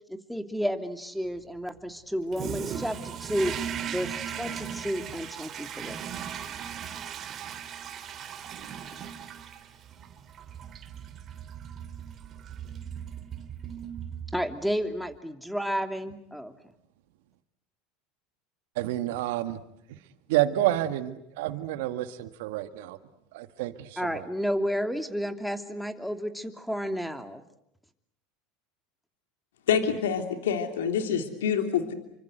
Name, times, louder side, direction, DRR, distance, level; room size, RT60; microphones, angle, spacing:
voice 1, 0.1-3.5 3.8-6.0 14.3-16.5 24.0-27.4, equal, ahead, 8 dB, 2.9 m, -31 dB
Toilet flush, 2.3-14.6, right 8 dB, 40° right, 3.1 m, -38 dB
voice 2, 18.7-19.6 19.9-20.0 20.3-23.0 23.3-24.3, right 14 dB, 75° right, 10 dB, 1.8 m, -29 dB
voice 3, 29.7-31.9, left 7 dB, 85° left, 7 dB, 3.2 m, -26 dB
29.5 x 25.0 x 8.1 m, 0.77 s
hypercardioid pair, 90°, 0 cm